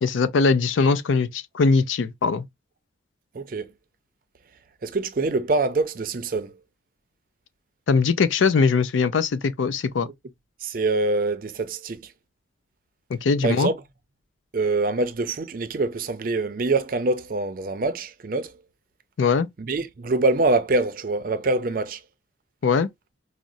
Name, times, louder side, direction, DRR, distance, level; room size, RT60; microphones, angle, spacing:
voice 1, 0.0-2.4 7.9-10.1 13.1-13.7 19.2-19.5 22.6-22.9, left 4 dB, 85° left, 0.4 m, -21 dB
voice 2, 3.3-3.7 4.8-6.5 10.0-10.1 10.6-12.1 13.4-13.8 14.5-18.5 19.6-22.0, right 3 dB, 45° right, 0.5 m, -24 dB
4.9 x 2.0 x 2.6 m
head